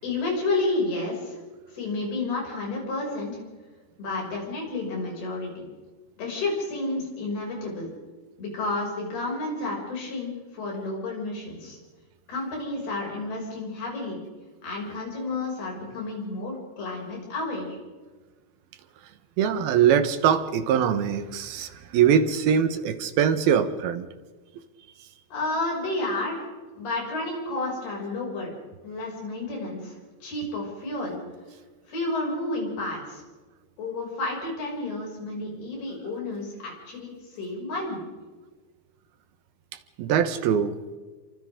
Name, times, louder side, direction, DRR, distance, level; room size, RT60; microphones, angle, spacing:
voice 1, 0.0-1.4 1.7-3.4 4.0-5.7 6.2-7.9 8.4-11.8 12.3-14.2 14.6-17.8 25.3-26.5 26.7-28.5 28.8-31.2 31.9-33.2 33.8-38.0, left 2 dB, 70° left, -2 dB, 8.5 m, -31 dB
voice 2, 19.4-24.1 40.0-40.8, right 8 dB, 75° right, 9 dB, 3.0 m, -22 dB
28.5 x 25.0 x 3.8 m, 1.3 s
omnidirectional pair, 4.6 m